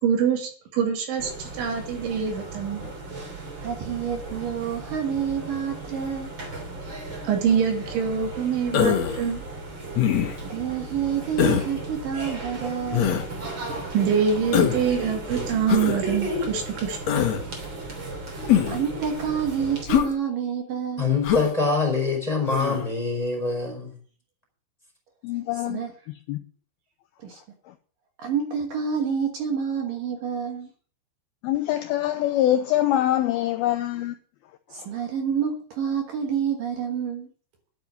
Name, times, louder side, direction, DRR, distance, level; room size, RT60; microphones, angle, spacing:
voice 1, 0.0-2.9 7.3-9.4 13.9-17.0, right 7 dB, 85° right, 5.1 m, -25 dB
sound 1, 1.2-19.8, right 2 dB, 30° right, 3.2 m, -35 dB
voice 2, 3.6-6.3 10.4-13.2 18.4-21.1 25.7-25.9 27.2-27.4 28.2-30.7 34.7-37.3, right 7 dB, 60° right, 2.6 m, -28 dB
Human voice, 8.7-9.2 10.0-10.5 11.4-11.7 12.9-13.3 14.5-14.9 15.7-16.0 17.1-17.4 18.5-18.8 19.9-20.1 21.2-21.5 22.5-22.8, left 9 dB, 65° left, 1.7 m, -22 dB
voice 3, 21.0-24.0, left 4 dB, 10° left, 3.8 m, -24 dB
voice 4, 25.2-26.5 27.7-27.8 31.4-34.2, left 13 dB, 90° left, 2.1 m, -24 dB
11.0 x 7.9 x 7.4 m
omnidirectional pair, 5.3 m